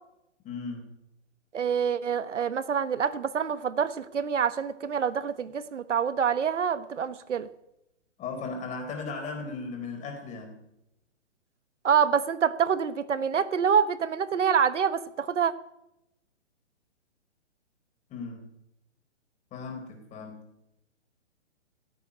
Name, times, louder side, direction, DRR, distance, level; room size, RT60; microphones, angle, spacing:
voice 1, 0.4-0.9 8.2-10.6 18.1-18.5 19.5-20.5, left 4 dB, 20° left, 3 dB, 4.2 m, -37 dB
voice 2, 1.5-7.5 11.8-15.5, right 7 dB, 75° right, 14 dB, 1.2 m, -26 dB
16.5 x 8.0 x 9.9 m, 0.86 s
hypercardioid pair, 140°, 36 cm